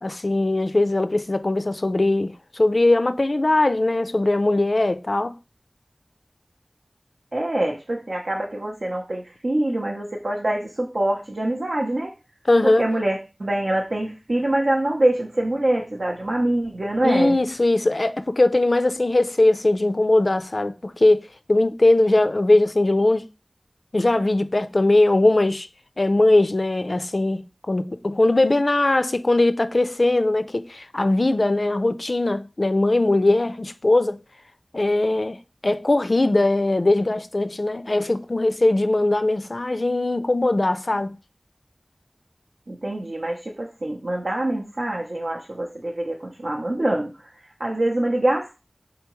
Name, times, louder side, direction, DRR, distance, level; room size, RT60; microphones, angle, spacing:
voice 1, 0.0-5.3 12.5-12.9 17.0-23.3 23.9-25.7 26.0-34.2 34.7-35.4 35.6-41.2, left 2 dB, 60° left, 0.3 m, -20 dB
voice 2, 7.3-12.1 12.6-17.4 42.7-47.1 47.6-48.5, right 1 dB, 80° right, 0.6 m, -24 dB
3.8 x 3.4 x 3.0 m
wide cardioid pair, 50°, 0 cm